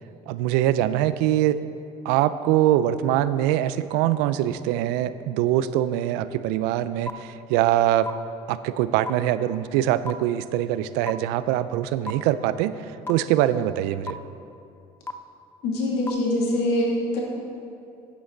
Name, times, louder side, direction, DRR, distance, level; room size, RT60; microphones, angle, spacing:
voice 1, 0.3-1.6 2.0-8.1 8.5-14.2, right 12 dB, 85° right, 14 dB, 0.4 m, -23 dB
sound 1, 7.1-7.2 8.1-8.2 9.1-9.2 10.1-10.2 11.1-11.2 12.1-12.2 13.1-13.2 14.1-14.2 15.1-15.2 16.1-16.2, left 3 dB, 15° left, 0.5 m, -30 dB
voice 2, 15.6-17.2, left 1 dB, 75° left, -3 dB, 2.4 m, -24 dB
9.9 x 9.6 x 3.9 m, 2.6 s
supercardioid pair, 95°, 17 cm